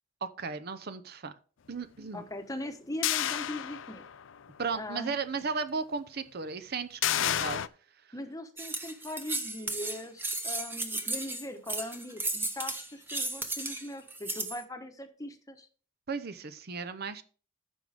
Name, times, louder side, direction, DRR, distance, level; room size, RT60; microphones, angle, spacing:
voice 1, 0.2-1.3 1.7-2.2 4.6-7.6 16.1-17.2, right 5 dB, 50° right, 10 dB, 0.7 m, -35 dB
voice 2, 2.1-4.0 4.7-5.2 8.1-15.7, left 1 dB, 15° left, 6 dB, 1.0 m, -40 dB
sound 1, 3.0-4.3 4.7-4.8 7.0-7.7, left 11 dB, 75° left, 0.5 m, -30 dB
sound 2, 8.6-14.6, right 2 dB, 10° right, 0.9 m, -34 dB
14.5 x 5.3 x 3.4 m, 0.39 s
head